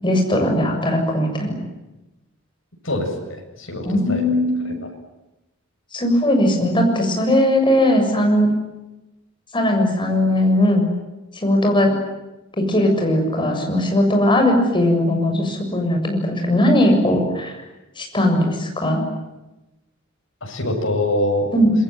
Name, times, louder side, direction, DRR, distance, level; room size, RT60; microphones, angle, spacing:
voice 1, 0.0-1.6 3.8-4.6 5.9-8.5 9.5-10.8 11.4-11.9 12.6-17.6 18.0-19.0 21.5-21.7, left 1 dB, 25° left, 3 dB, 7.2 m, -18 dB
voice 2, 2.8-4.4 4.6-4.7 20.4-21.5, left 1 dB, 70° left, 2 dB, 7.6 m, -24 dB
27.5 x 22.0 x 9.4 m, 0.99 s
head